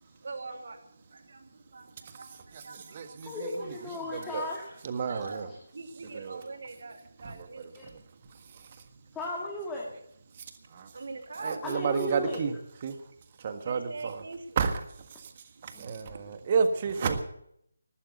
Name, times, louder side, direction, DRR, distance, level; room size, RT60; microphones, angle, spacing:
voice 1, 0.0-3.7 4.2-4.3 5.0-8.8 9.0-9.2 10.6-11.6 13.6-14.6 15.2-16.5, right 3 dB, 60° right, 5 dB, 2.7 m, -44 dB
voice 2, 2.5-3.6 4.1-4.5 4.8-5.5 6.1-6.4 7.2-7.9 10.7-10.9 11.4-12.5 12.8-13.0 13.4-14.2 14.6-14.8 15.2-15.3 15.6-17.2, right 5 dB, 35° right, 9 dB, 1.6 m, -31 dB
voice 3, 3.3-4.8 7.8-7.9 9.1-9.9 11.6-12.4 15.7-15.9, left 1 dB, 10° left, -3 dB, 2.1 m, -35 dB
13.5 x 12.0 x 8.1 m, 0.73 s
figure-of-eight pair, 155°, 0 cm